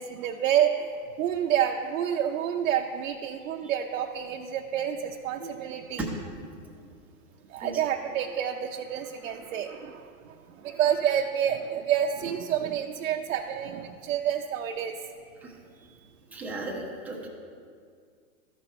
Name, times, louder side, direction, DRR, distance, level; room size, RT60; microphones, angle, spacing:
voice 1, 0.0-6.1 7.5-15.0, right 9 dB, 65° right, 1 dB, 0.6 m, -28 dB
voice 2, 16.3-17.3, right 2 dB, 5° right, -3 dB, 0.6 m, -35 dB
13.5 x 5.2 x 4.3 m, 2.2 s
hypercardioid pair, 150°, 44 cm